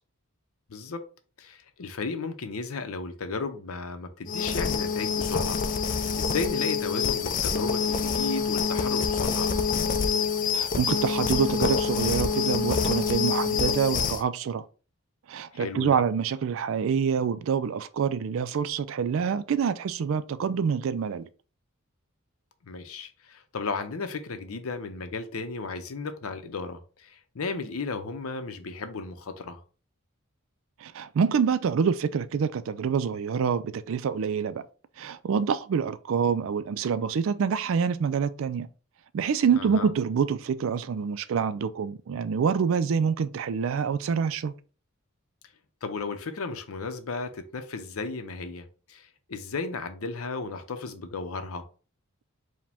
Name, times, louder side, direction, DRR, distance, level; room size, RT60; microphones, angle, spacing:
voice 1, 0.7-1.0 1.4-9.5 15.5-16.0 22.6-29.6 39.6-39.9 45.8-51.7, left 4 dB, 80° left, 0.6 m, -34 dB
sound 1, 4.3-14.2, left 5 dB, 40° left, 0.3 m, -26 dB
voice 2, 10.5-14.6 15.3-21.3 30.8-34.6 35.0-38.7 39.1-44.5, right 6 dB, 65° right, 0.3 m, -26 dB
4.9 x 2.2 x 3.4 m
head